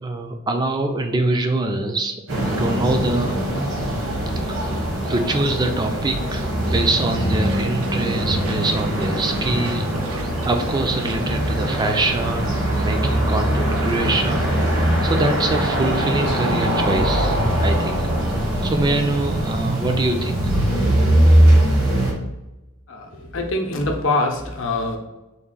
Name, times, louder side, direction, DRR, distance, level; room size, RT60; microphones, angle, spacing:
voice 1, 0.0-2.1 2.4-3.4 4.4-14.5 15.0-18.1 18.6-20.5, right 2 dB, 20° right, 5 dB, 0.3 m, -24 dB
sound 1, 2.3-22.1, right 1 dB, 70° right, 1.1 m, -21 dB
sound 2, 6.6-11.9, right 2 dB, 85° right, 0.5 m, -37 dB
voice 2, 22.9-25.0, left 2 dB, 60° left, 3 dB, 0.6 m, -24 dB
3.5 x 2.4 x 3.8 m, 1.0 s
head